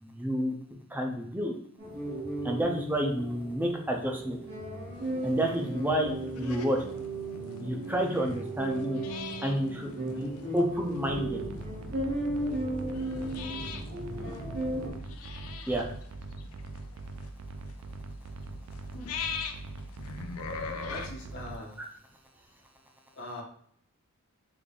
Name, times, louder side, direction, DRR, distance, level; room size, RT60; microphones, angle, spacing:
voice 1, 0.0-0.5 0.9-1.5 2.4-4.4 5.2-6.8 7.6-9.0 9.4-10.3 10.5-11.4 15.7-15.9, equal, 10° right, 1 dB, 0.4 m, -29 dB
sound 1, 1.8-14.9, right 1 dB, 50° right, 1.4 m, -36 dB
sound 2, 4.9-21.1, left 5 dB, 75° left, 0.5 m, -43 dB
sound 3, 11.1-21.6, right 2 dB, 80° right, 0.4 m, -42 dB
voice 2, 20.9-21.8 22.3-22.4 23.1-23.4, left 1 dB, 55° left, -4 dB, 1.1 m, -42 dB
3.7 x 3.4 x 2.3 m, 0.64 s
head